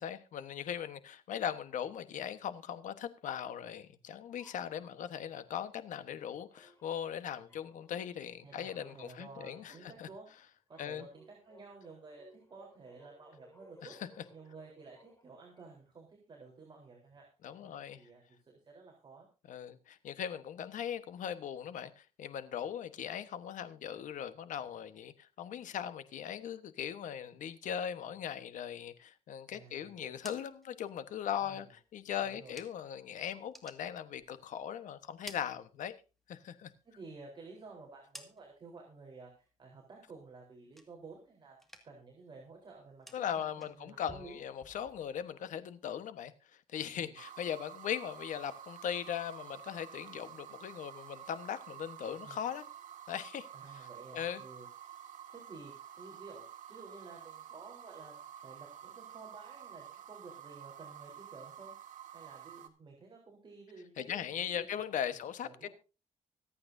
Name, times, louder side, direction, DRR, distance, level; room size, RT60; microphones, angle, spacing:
voice 1, 0.0-10.1 10.8-11.1 13.8-14.1 17.4-18.0 19.5-35.9 36.3-36.7 43.1-46.3 46.7-52.7 53.1-53.5 53.7-53.9 54.1-54.4 64.0-65.7, left 9 dB, 70° left, 1.2 m, -39 dB
sound 1, 4.4-6.2 6.5-16.0, equal, 20° left, 6.9 m, -63 dB
voice 2, 8.4-10.3 10.7-13.9 14.3-17.3 17.6-19.3 29.5-30.2 31.4-31.6 32.2-32.6 36.8-44.4 46.9-47.1 52.2-52.4 53.5-54.7 55.3-55.7 56.0-56.4 56.7-61.7 62.1-64.7 65.4-65.7, right 3 dB, 35° right, 3.9 m, -53 dB
sound 2, 30.1-33.0 33.3-34.7 35.0-36.3 36.6-38.8 39.1-39.6 40.0-41.3 41.5-42.2 42.4-45.3, equal, ahead, 2.0 m, -56 dB
sound 3, 47.2-62.7, right 10 dB, 75° right, 2.0 m, -50 dB
25.0 x 8.7 x 2.7 m
cardioid pair, 120°, 13 cm